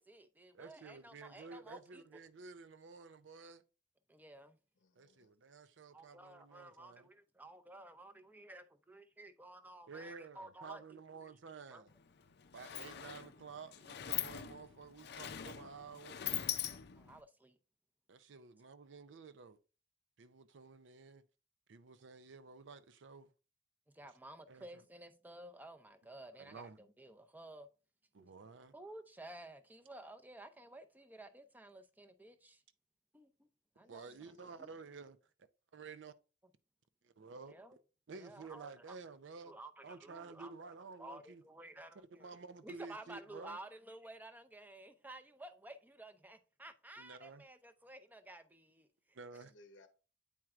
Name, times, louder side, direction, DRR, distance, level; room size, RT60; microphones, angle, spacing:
voice 1, 0.0-2.0 4.1-4.6 5.9-11.3 11.7-11.8 17.0-17.6 23.9-27.7 28.2-28.3 28.7-32.6 33.1-33.5 33.8-34.1 34.6-34.7 37.5-37.8 38.1-39.0 39.4-40.5 40.8-42.3 42.6-49.2, right 1 dB, 10° right, 0.5 m, -53 dB
voice 2, 0.5-3.6 5.0-7.1 9.9-11.9 12.5-16.2 18.1-19.6 20.2-21.2 21.7-23.3 24.5-24.6 26.4-26.8 28.1-28.7 33.9-35.2 35.7-36.1 37.0-37.6 38.1-39.6 39.8-41.4 42.0-43.6 47.0-47.4 49.1-49.5, right 4 dB, 80° right, 0.5 m, -52 dB
voice 3, 4.8-5.3 33.8-34.7 49.3-49.9, left 2 dB, 90° left, 0.8 m, -64 dB
Sliding door, 11.9-12.0 12.3-17.2, left 11 dB, 65° left, 0.5 m, -42 dB
8.6 x 4.5 x 2.4 m
head